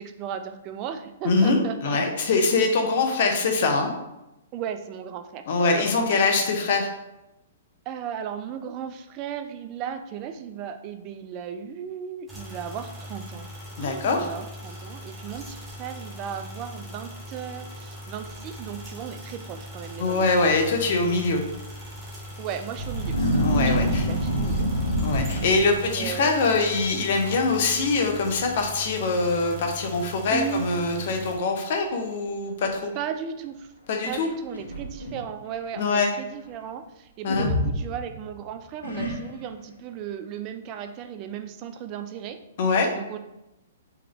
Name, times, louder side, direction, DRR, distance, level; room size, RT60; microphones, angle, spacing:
voice 1, 0.0-2.0 4.5-6.0 7.9-13.5 13.8-20.4 22.4-23.2 23.6-24.7 25.6-26.4 30.3-30.7 32.9-33.7 34.0-42.4 42.9-43.2, right 8 dB, 35° right, 8 dB, 0.4 m, -36 dB
voice 2, 1.2-3.9 5.5-6.9 13.8-14.3 20.0-21.4 23.4-24.0 25.0-32.9 33.9-34.3 35.7-36.1 37.2-37.5 42.6-42.9, left 3 dB, 55° left, 3 dB, 0.8 m, -23 dB
sound 1, 12.3-31.4, equal, 10° right, 1.2 m, -41 dB
sound 2, 22.8-26.0 26.7-26.9 27.2-27.7 27.9-28.0 28.8-28.9 29.4-29.5 30.0-30.5 31.3-31.4 34.2-35.2 37.3-38.3 38.8-39.6, equal, 85° left, 1.1 m, -26 dB
3.4 x 3.3 x 3.6 m, 0.92 s
hypercardioid pair, 125°, 0 cm